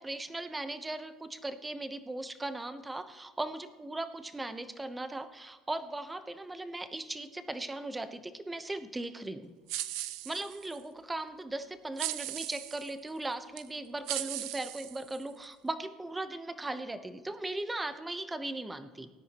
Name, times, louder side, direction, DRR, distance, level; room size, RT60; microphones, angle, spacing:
voice 1, 0.0-9.5 10.2-19.1, right 2 dB, 15° right, 10 dB, 0.9 m, -38 dB
sound 1, 9.7-10.8 12.0-12.9 13.6-13.7 14.1-15.5, right 15 dB, 80° right, 0.6 m, -38 dB
18.5 x 9.7 x 3.0 m, 1.3 s
cardioid pair, 110°, 0 cm